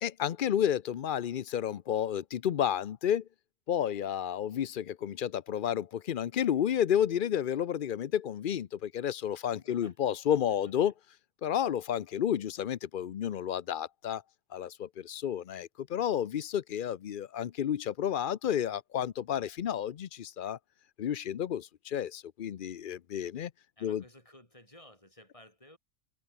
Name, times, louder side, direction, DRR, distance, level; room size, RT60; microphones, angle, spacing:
voice 1, 0.0-3.2 3.7-10.9 11.4-14.2 14.5-20.6 21.0-23.5 23.8-24.0, left 9 dB, 55° left, 0.6 m, -31 dB
voice 2, 9.6-10.0 10.5-10.9 23.8-25.8, left 1 dB, 20° left, 6.2 m, -56 dB
omnidirectional pair, 1.5 m